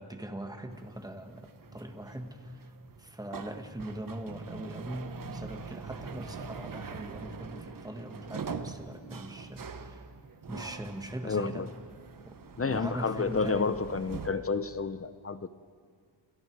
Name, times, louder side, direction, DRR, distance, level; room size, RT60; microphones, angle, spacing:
voice 1, 0.0-2.7 3.0-10.0 10.5-11.6 12.2-13.8, right 1 dB, 10° right, 5 dB, 1.7 m, -41 dB
sound 1, 0.7-14.3, right 5 dB, 50° right, 1.3 m, -44 dB
voice 2, 11.2-11.7 12.6-15.5, left 4 dB, 30° left, 13 dB, 0.8 m, -30 dB
28.0 x 27.0 x 4.8 m, 2.1 s
wide cardioid pair, 115°, 43 cm